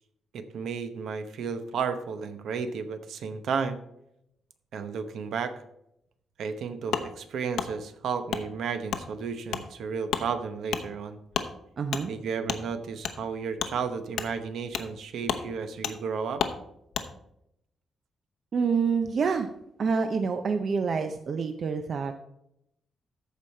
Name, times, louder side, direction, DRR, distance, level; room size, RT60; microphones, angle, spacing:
voice 1, 0.3-3.8 4.7-5.5 6.4-11.2 12.1-16.4, right 6 dB, 65° right, 10 dB, 0.9 m, -33 dB
Wood, 6.9-7.1 7.6-7.7 8.3-8.4 8.9-9.0 9.5-9.6 10.1-10.3 10.7-10.8 11.3-11.5 11.9-12.0 12.5-12.6 13.0-13.2 13.6-13.7 14.1-14.3 14.7-14.9 15.2-15.4 15.8-16.0 16.4-16.6 16.9-17.1, left 8 dB, 75° left, 0.8 m, -30 dB
voice 2, 11.8-12.1 18.5-19.5 19.8-22.1, right 5 dB, 40° right, 8 dB, 0.5 m, -27 dB
14.0 x 5.2 x 4.3 m, 0.79 s
wide cardioid pair, 175°, 0 cm